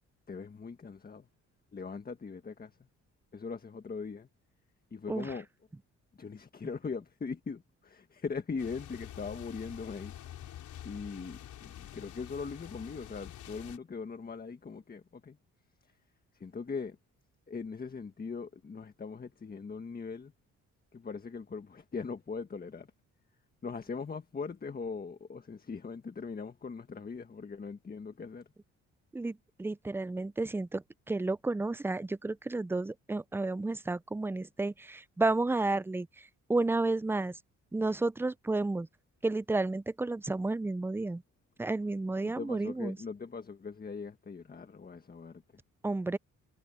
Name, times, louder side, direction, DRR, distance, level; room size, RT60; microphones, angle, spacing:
voice 1, 0.3-1.3 1.7-2.8 3.3-4.3 4.9-5.5 6.1-10.2 10.8-15.4 15.8-16.0 16.3-17.0 17.5-20.3 20.9-22.9 23.6-28.5 42.2-45.4, left 5 dB, 30° left, 1.6 m, -40 dB
sound 1, 8.6-13.8, left 11 dB, 75° left, 5.3 m, -47 dB
voice 2, 29.1-36.1 36.5-37.4 37.7-38.9 39.2-41.2 41.6-43.0 45.8-46.2, right 2 dB, 10° right, 0.5 m, -31 dB
cardioid pair, 90°, 30 cm